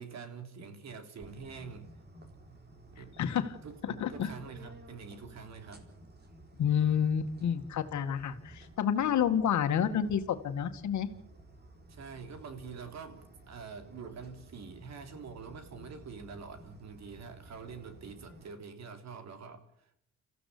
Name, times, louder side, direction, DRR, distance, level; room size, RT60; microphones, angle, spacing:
voice 1, 0.0-1.9 2.9-3.2 3.6-5.9 11.9-20.0, right 5 dB, 60° right, 7 dB, 3.5 m, -46 dB
sound 1, 1.2-18.5, right 1 dB, 35° right, 4.1 m, -54 dB
voice 2, 3.2-3.6 4.0-4.3 6.6-11.1, left 8 dB, 70° left, 8 dB, 2.0 m, -29 dB
27.5 x 15.0 x 8.5 m, 0.75 s
cardioid pair, 90°, 30 cm